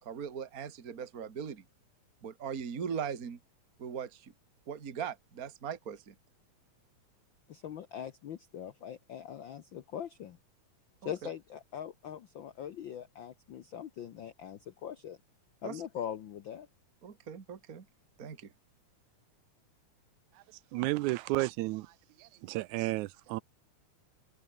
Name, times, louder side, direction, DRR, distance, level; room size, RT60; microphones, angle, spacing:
voice 1, 0.0-1.6 2.2-3.4 3.8-4.3 4.7-6.1 11.0-11.1 15.6-15.8 17.0-17.8 18.2-18.5, right 7 dB, 30° right, 2.1 m, -39 dB
voice 2, 7.5-10.4 11.0-15.2 15.6-16.7, left 9 dB, 70° left, 1.1 m, -42 dB
voice 3, 20.7-21.9 22.2-23.4, right 19 dB, 80° right, 1.9 m, -32 dB
omnidirectional pair, 3.5 m